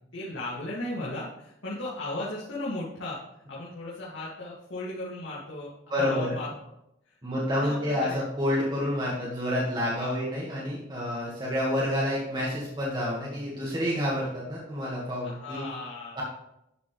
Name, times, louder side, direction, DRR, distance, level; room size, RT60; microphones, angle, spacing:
voice 1, 0.1-3.2 3.5-5.7 6.0-6.5 7.6-8.2 10.0-10.1 15.4-16.2, left 2 dB, 85° left, -7 dB, 2.3 m, -36 dB
voice 2, 5.9-6.4 7.2-15.7 16.2-16.3, left 1 dB, 25° right, -6 dB, 1.7 m, -29 dB
11.5 x 6.9 x 3.3 m, 0.83 s
head